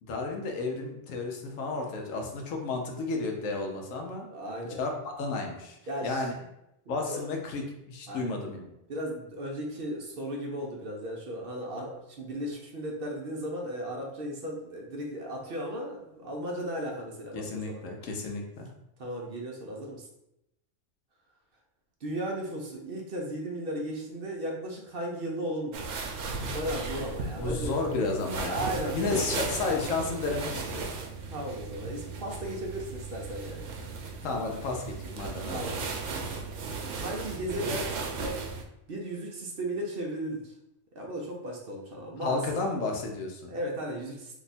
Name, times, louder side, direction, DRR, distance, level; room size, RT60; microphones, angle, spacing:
voice 1, 0.0-4.3 4.6-4.9 5.2-6.3 6.9-8.7 17.3-18.7 27.3-30.9 34.2-35.7 42.2-43.6, left 3 dB, 90° left, 2 dB, 1.1 m, -32 dB
voice 2, 4.3-4.8 5.9-6.3 6.9-7.2 8.1-8.4 8.9-17.8 19.0-20.1 22.0-25.8 26.1-27.9 28.4-29.3 31.3-33.8 35.5-35.9 36.9-38.4 38.9-40.5 40.9-42.4 43.5-44.3, right 1 dB, 55° right, -1 dB, 0.7 m, -36 dB
sound 1, 25.7-38.6, right 4 dB, 80° right, 1.0 m, -36 dB
2.9 x 2.3 x 4.0 m, 0.85 s
omnidirectional pair, 1.3 m